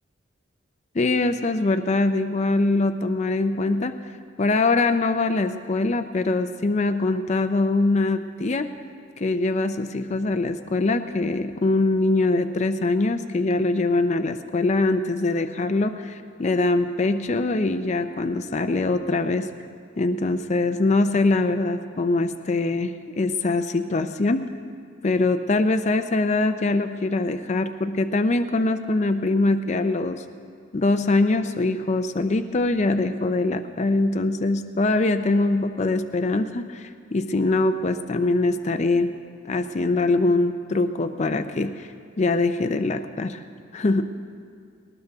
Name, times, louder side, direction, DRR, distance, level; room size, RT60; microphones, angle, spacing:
voice 1, 0.9-3.9 4.4-8.7 9.2-19.5 20.0-24.4 25.0-30.2 30.7-39.1 39.4-41.9 42.2-43.4 43.7-44.1, left 2 dB, 35° left, 8 dB, 0.5 m, -23 dB
19.5 x 19.0 x 3.5 m, 2.3 s
head